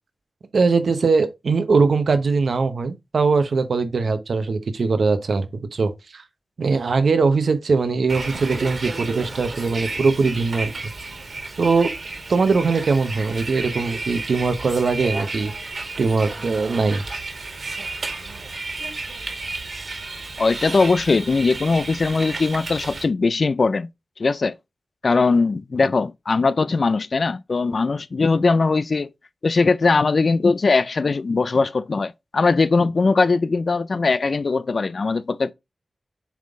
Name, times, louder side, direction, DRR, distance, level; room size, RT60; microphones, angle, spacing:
voice 1, 0.5-6.2 6.6-10.7 11.6-11.9 12.3-15.5 16.0-17.0, right 4 dB, 70° right, 1.0 m, -21 dB
Bus, 8.1-23.0, right 3 dB, 55° right, 1.9 m, -32 dB
voice 2, 20.4-23.9 24.2-24.5 25.0-29.1 29.4-35.5, left 4 dB, 55° left, 0.4 m, -20 dB
7.3 x 3.8 x 3.7 m
wide cardioid pair, 95°, 0 cm